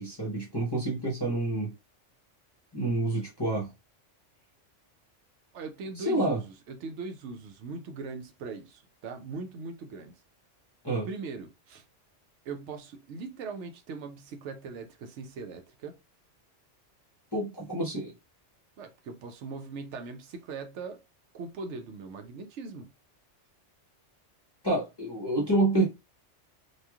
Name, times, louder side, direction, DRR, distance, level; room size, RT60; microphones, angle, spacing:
voice 1, 0.0-1.7 2.7-3.7 6.0-6.4 10.8-11.1 17.3-18.1 24.6-25.8, right 2 dB, 25° left, 0.6 m, -28 dB
voice 2, 5.5-10.2 11.0-11.8 12.4-16.0 18.8-21.0 21.3-22.9, right 4 dB, 75° right, 0.9 m, -40 dB
3.0 x 2.3 x 2.2 m
omnidirectional pair, 1.2 m